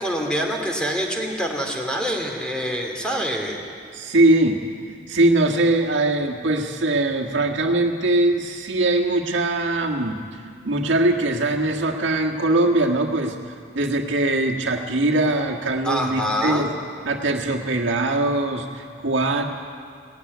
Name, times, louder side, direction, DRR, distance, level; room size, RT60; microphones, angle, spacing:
voice 1, 0.0-3.6 15.8-16.7, equal, 5° left, 1 dB, 2.5 m, -25 dB
voice 2, 3.9-4.6 5.1-10.2 10.6-13.4 13.7-16.7 17.0-19.4, right 2 dB, 75° right, 0 dB, 1.7 m, -21 dB
18.0 x 15.5 x 9.4 m, 2.3 s
head